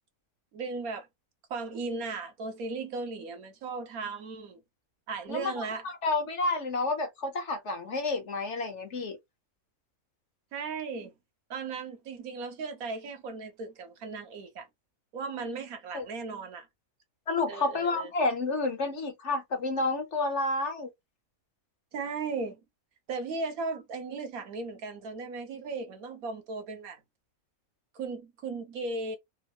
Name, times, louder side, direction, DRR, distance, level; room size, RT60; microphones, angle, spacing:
voice 1, 0.5-1.1 1.5-4.6 5.1-5.9 10.5-11.1 11.5-14.7 15.1-16.7 17.5-18.1 21.9-22.6 23.1-27.0 27.9-29.2, right 4 dB, 80° right, 1.3 m, -36 dB
voice 2, 5.3-9.2 15.9-16.0 17.3-20.9, left 3 dB, 55° left, 1.2 m, -30 dB
3.5 x 2.0 x 3.0 m
omnidirectional pair, 1.5 m